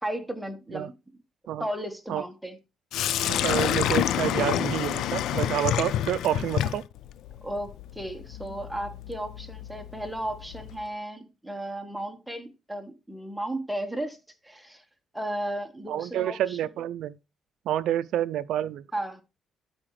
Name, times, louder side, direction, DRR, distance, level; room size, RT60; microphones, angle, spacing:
voice 1, 0.0-0.9 1.6-2.6 7.4-14.2 14.4-14.8 15.1-16.6 18.9-19.2, right 1 dB, ahead, 1.3 m, -34 dB
Sink (filling or washing), 2.9-10.8, left 11 dB, 80° left, 0.4 m, -29 dB
voice 2, 3.3-6.8 15.9-17.2 17.7-18.9, right 11 dB, 80° right, 0.4 m, -28 dB
12.5 x 5.0 x 3.2 m
cardioid pair, 105°, 0 cm